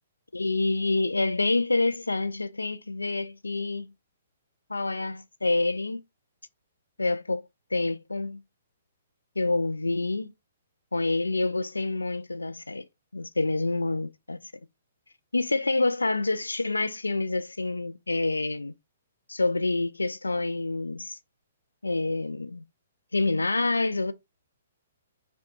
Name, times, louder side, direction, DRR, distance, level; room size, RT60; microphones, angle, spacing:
voice 1, 0.3-3.9 4.7-6.0 7.0-7.4 7.7-8.4 9.4-10.3 10.9-12.8 13.1-14.5 15.3-18.7 19.3-21.2 21.8-22.6 23.1-24.1, left 2 dB, 80° left, 0.4 m, -27 dB
5.0 x 2.3 x 2.7 m
figure-of-eight pair, 120°, 0 cm